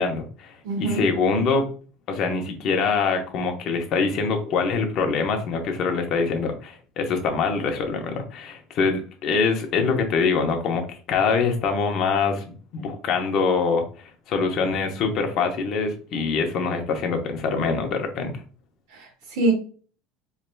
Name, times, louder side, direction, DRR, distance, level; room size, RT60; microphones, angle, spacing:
voice 1, 0.0-1.7 2.1-18.4, left 4 dB, 50° left, 0.9 m, -24 dB
voice 2, 0.6-1.0 18.9-19.5, right 2 dB, 85° right, 1.9 m, -24 dB
4.7 x 3.2 x 2.3 m
cardioid pair, 135°, 0 cm